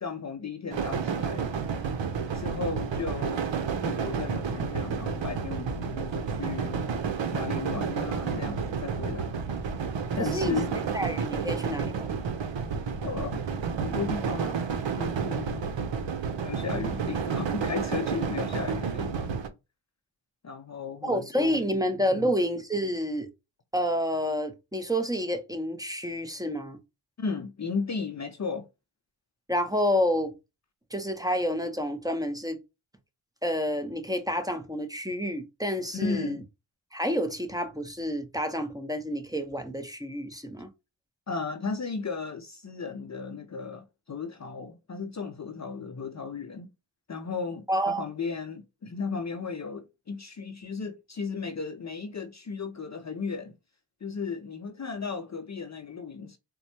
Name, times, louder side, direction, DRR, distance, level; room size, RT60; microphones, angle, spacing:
voice 1, 0.0-1.5 2.3-6.9 7.3-9.4 10.2-11.0 11.3-11.5 13.0-13.4 13.8-14.6 15.0-15.7 16.4-19.3 20.4-21.8 22.1-22.3 27.2-28.7 35.9-36.4 41.3-46.7 47.1-53.5 54.0-56.4, left 5 dB, 35° left, 0.6 m, -35 dB
sound 1, 0.7-19.5, right 6 dB, 60° right, 0.8 m, -31 dB
voice 2, 10.2-10.6 10.9-12.2 21.0-23.3 23.7-26.8 29.5-30.3 30.9-32.6 33.4-36.3 36.9-40.7 47.7-48.0, equal, 5° right, 0.9 m, -29 dB
4.2 x 2.2 x 2.8 m
cardioid pair, 45°, 50 cm